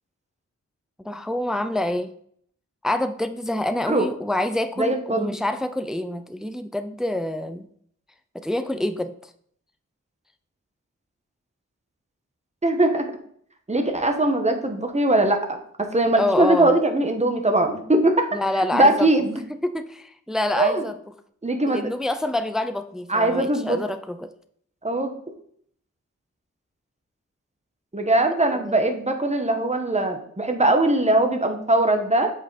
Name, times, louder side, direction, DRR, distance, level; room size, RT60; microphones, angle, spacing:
voice 1, 1.0-2.1 2.8-7.7 8.3-9.1 16.2-16.8 18.3-19.1 19.5-21.0 21.7-24.3 28.4-28.8, left 1 dB, ahead, 10 dB, 0.5 m, -27 dB
voice 2, 4.8-5.3 12.6-13.1 13.7-15.6 15.9-18.3 18.7-19.4 20.6-20.8 21.4-21.8 23.1-23.8 24.8-25.1 27.9-32.3, right 2 dB, 20° right, 5 dB, 1.3 m, -21 dB
8.1 x 5.6 x 4.1 m, 0.64 s
wide cardioid pair, 80°, 30 cm